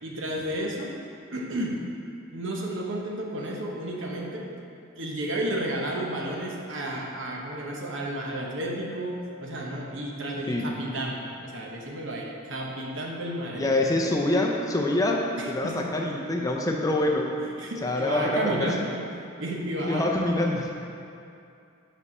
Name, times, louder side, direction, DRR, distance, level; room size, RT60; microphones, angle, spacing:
voice 1, 0.0-0.9 1.3-1.8 2.3-4.5 4.9-13.7 15.4-15.9 17.6-20.1, right 1 dB, 65° right, -1 dB, 0.9 m, -32 dB
voice 2, 13.5-15.2 15.5-17.3 17.8-18.7 19.8-20.7, left 1 dB, 15° left, 0 dB, 0.4 m, -25 dB
5.4 x 5.1 x 5.4 m, 2.5 s
head